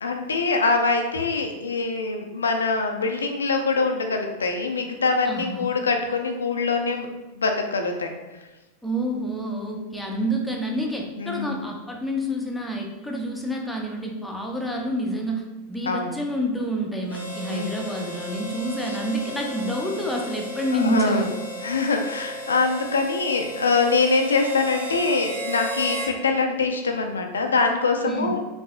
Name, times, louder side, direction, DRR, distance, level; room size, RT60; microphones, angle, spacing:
voice 1, 0.0-7.1 7.3-8.1 11.2-11.6 15.9-16.2 17.5-17.8 20.7-21.3 21.6-28.4, left 4 dB, 70° left, 4 dB, 0.5 m, -24 dB
voice 2, 5.2-5.7 8.8-15.4 15.7-21.3 28.0-28.4, right 1 dB, ahead, 0 dB, 0.6 m, -28 dB
Harmonica, 17.0-26.1, equal, 80° right, 1.0 m, -34 dB
4.7 x 2.7 x 2.4 m, 1.1 s
figure-of-eight pair, 90°, 0 cm